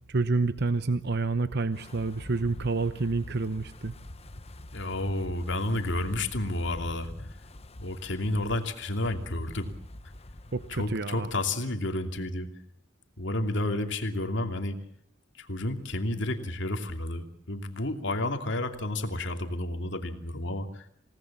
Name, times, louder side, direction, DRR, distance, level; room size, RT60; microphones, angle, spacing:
voice 1, 0.1-3.9 10.5-11.3, right 3 dB, 55° right, 12 dB, 0.9 m, -28 dB
Wind, 1.7-10.9, left 1 dB, 30° left, 1.1 m, -45 dB
voice 2, 4.7-7.3 7.8-9.7 10.7-12.5 13.2-14.8 15.4-20.8, left 1 dB, 65° left, 6 dB, 2.8 m, -31 dB
28.0 x 18.5 x 7.4 m, 0.69 s
head